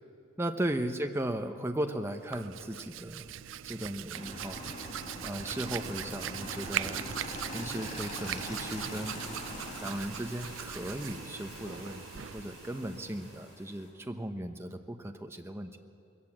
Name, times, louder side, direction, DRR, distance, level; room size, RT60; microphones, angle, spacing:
voice 1, 0.4-3.4 3.6-4.6 5.2-7.0 7.5-9.1 9.8-15.8, right 1 dB, 15° right, 5 dB, 0.9 m, -36 dB
Hands, 2.1-13.5, right 10 dB, 80° right, 0.4 m, -40 dB
Motorcycle / Engine, 4.1-10.0, left 2 dB, 35° left, 2.3 m, -43 dB
sound 1, 7.3-13.9, left 2 dB, 65° left, 5.6 m, -49 dB
21.0 x 16.5 x 7.4 m, 2.5 s
head